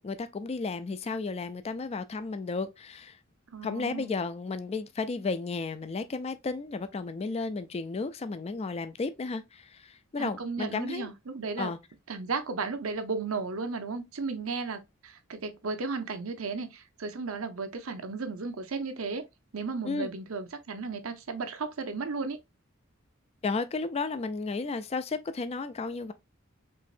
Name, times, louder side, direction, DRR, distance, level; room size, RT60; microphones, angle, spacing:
voice 1, 0.0-3.2 3.6-11.1 11.6-11.8 19.8-20.1 23.4-26.1, left 4 dB, 30° left, 0.4 m, -33 dB
voice 2, 3.5-4.2 10.2-11.7 12.1-19.2 19.5-22.4, right 4 dB, 85° right, 0.8 m, -34 dB
4.5 x 3.1 x 2.5 m
head